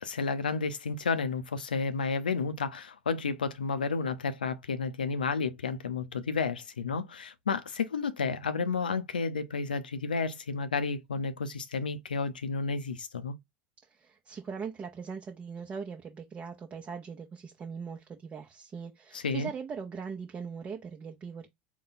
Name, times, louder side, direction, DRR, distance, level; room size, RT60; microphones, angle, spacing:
voice 1, 0.0-13.3 19.1-19.5, left 4 dB, 85° left, 0.5 m, -31 dB
voice 2, 13.9-21.5, right 6 dB, 30° right, 0.8 m, -40 dB
3.9 x 2.2 x 4.1 m
hypercardioid pair, 80°, 5 cm